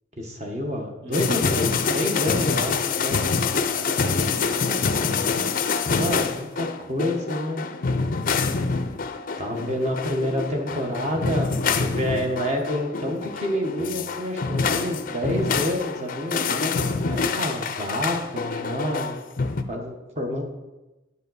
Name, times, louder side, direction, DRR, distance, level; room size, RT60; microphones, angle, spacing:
voice 1, 0.2-3.2 6.0-7.6 9.4-16.9 17.4-19.2 19.7-20.4, left 1 dB, 30° right, 2 dB, 1.3 m, -28 dB
voice 2, 1.0-1.4 3.7-5.0 10.6-10.9 16.8-17.6, equal, 60° right, 1 dB, 1.7 m, -40 dB
sound 1, 1.1-19.6, left 4 dB, 40° left, 0.5 m, -26 dB
9.7 x 7.4 x 4.1 m, 1.1 s
head